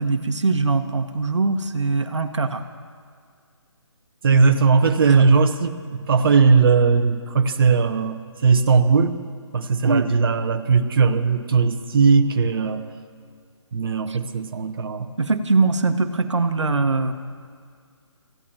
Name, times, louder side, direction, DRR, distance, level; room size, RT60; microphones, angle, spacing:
voice 1, 0.0-2.6 5.1-5.3 9.8-10.1 14.1-14.2 15.2-17.1, right 3 dB, 75° right, 7 dB, 1.4 m, -22 dB
voice 2, 4.2-9.2 9.5-12.9 13.7-15.1, right 5 dB, 50° right, 6 dB, 1.1 m, -18 dB
27.5 x 16.0 x 2.9 m, 2.1 s
figure-of-eight pair, 145°, 15 cm